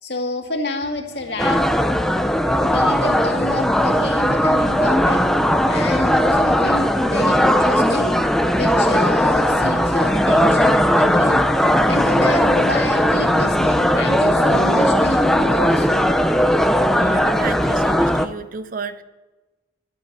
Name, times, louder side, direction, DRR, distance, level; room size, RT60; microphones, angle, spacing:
voice 1, 0.0-1.7 2.6-5.2 5.7-8.2 8.5-11.5 11.9-16.1, left 2 dB, 60° left, 2 dB, 2.1 m, -29 dB
sound 1, 1.1-17.2, left 1 dB, 20° left, 1.9 m, -45 dB
sound 2, 1.4-18.3, equal, ahead, 0.5 m, -18 dB
voice 2, 17.0-19.0, right 4 dB, 45° right, 12 dB, 0.7 m, -31 dB
11.5 x 8.2 x 9.9 m, 1.2 s
head